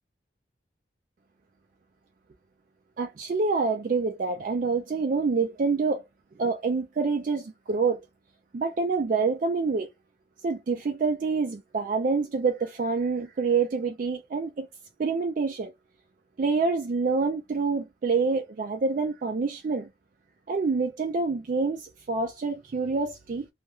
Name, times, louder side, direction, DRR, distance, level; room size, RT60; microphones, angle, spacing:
voice 1, 3.0-6.0 6.4-8.0 8.5-9.9 10.4-14.7 15.0-15.7 16.4-19.9 20.5-23.5, right 4 dB, 45° right, 0.3 m, -27 dB
2.3 x 2.1 x 2.9 m
head